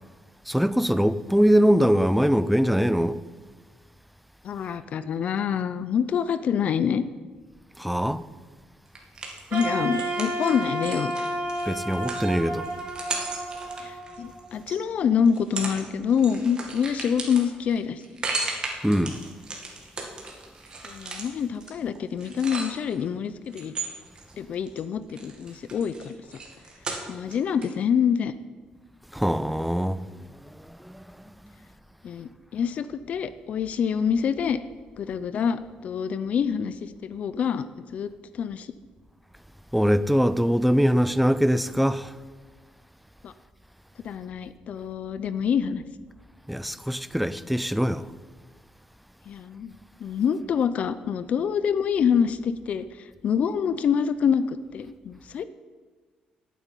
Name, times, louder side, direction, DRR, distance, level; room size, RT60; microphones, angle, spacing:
voice 1, 0.5-3.2 7.8-8.2 11.7-12.7 18.8-19.2 29.1-30.0 30.8-31.0 39.7-42.1 46.5-48.1, equal, ahead, 0.4 m, -22 dB
voice 2, 4.4-7.0 9.5-11.1 13.8-18.2 20.8-23.7 24.4-26.1 27.1-28.3 32.0-34.6 35.0-37.6 37.9-38.7 43.2-43.3 44.0-45.8 49.3-55.4, left 7 dB, 55° left, 0.5 m, -26 dB
sound 1, 8.9-14.8 15.3-15.8 16.1-23.0 23.5-24.8 25.1-27.3 27.6-27.7, right 3 dB, 30° right, 2.2 m, -36 dB
Wind instrument woodwind instrument, 9.5-14.6, right 1 dB, 50° right, 2.9 m, -31 dB
9.3 x 8.2 x 9.0 m
cardioid pair, 140°, 3 cm